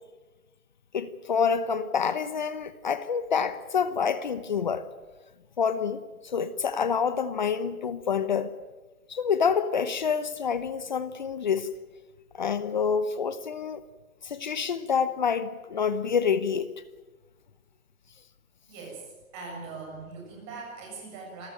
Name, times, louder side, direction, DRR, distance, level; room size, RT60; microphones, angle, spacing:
voice 1, 0.9-4.9 5.6-8.5 9.1-11.7 12.3-13.8 14.2-16.7, left 6 dB, 30° left, 14 dB, 1.0 m, -27 dB
voice 2, 18.7-21.5, right 4 dB, 20° right, -1 dB, 7.4 m, -41 dB
27.0 x 14.0 x 9.0 m, 1.2 s
hypercardioid pair, 160°, 43 cm